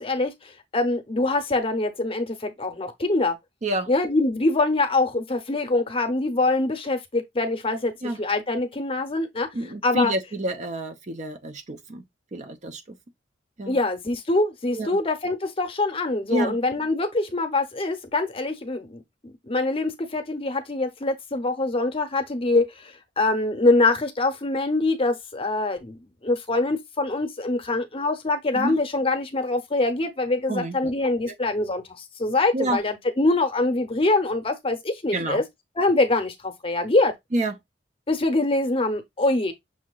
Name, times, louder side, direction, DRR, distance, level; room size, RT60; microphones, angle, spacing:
voice 1, 0.0-3.4 3.9-7.9 8.2-9.5 9.8-10.1 13.7-35.4 35.8-37.1 38.1-39.5, left 2 dB, 30° left, 0.8 m, -24 dB
voice 2, 9.5-12.0 12.3-13.0 13.6-13.8 14.7-15.0 16.3-16.6 28.5-28.8 30.5-30.9 31.3-31.4 32.5-32.8 35.1-35.4 37.3-37.6, right 1 dB, 40° right, 0.7 m, -28 dB
6.3 x 2.8 x 2.3 m
head